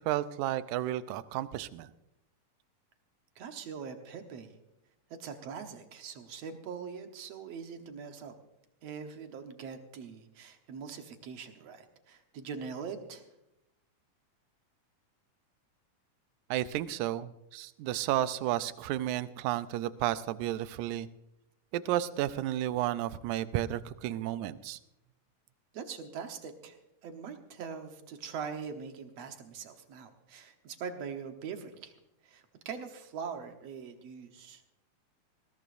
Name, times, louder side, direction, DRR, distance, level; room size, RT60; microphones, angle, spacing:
voice 1, 0.0-1.9 16.5-21.1 21.7-24.8, right 13 dB, 80° right, 14 dB, 2.0 m, -32 dB
voice 2, 3.4-4.5 5.2-8.3 8.8-13.3 25.7-31.9 32.2-34.6, right 6 dB, 65° right, 6 dB, 2.1 m, -42 dB
20.5 x 17.0 x 2.6 m, 0.87 s
omnidirectional pair, 3.5 m